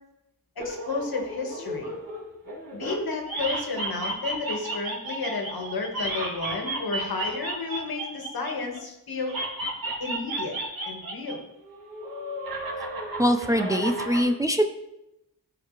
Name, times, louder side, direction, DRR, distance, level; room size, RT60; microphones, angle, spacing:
voice 1, 0.6-1.9 2.7-9.3 10.0-10.5 10.8-11.4, left 3 dB, 65° left, 2 dB, 1.8 m, -32 dB
sound 1, 0.6-3.0 3.2-8.8 9.3-11.4 11.6-14.2, right 1 dB, 60° right, 2.3 m, -33 dB
voice 2, 13.2-14.8, equal, 10° right, 6 dB, 0.6 m, -23 dB
13.0 x 4.6 x 3.3 m, 0.88 s
cardioid pair, 60°, 38 cm